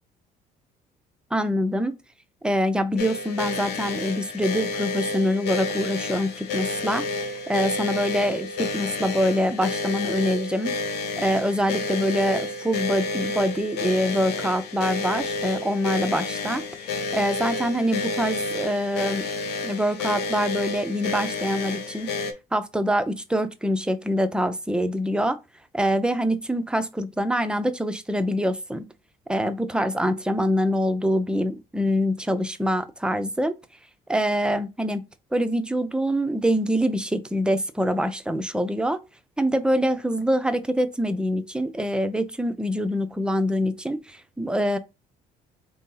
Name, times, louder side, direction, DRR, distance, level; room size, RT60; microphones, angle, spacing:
voice 1, 1.3-2.0 2.4-7.0 7.5-10.8 11.2-19.3 19.6-22.2 22.5-25.4 25.7-28.9 29.3-33.5 34.1-35.0 35.3-39.0 39.4-44.8, equal, 5° right, 0.5 m, -25 dB
sound 1, 3.0-22.3, left 3 dB, 75° left, 0.7 m, -30 dB
3.7 x 2.7 x 3.7 m
cardioid pair, 110°, 17 cm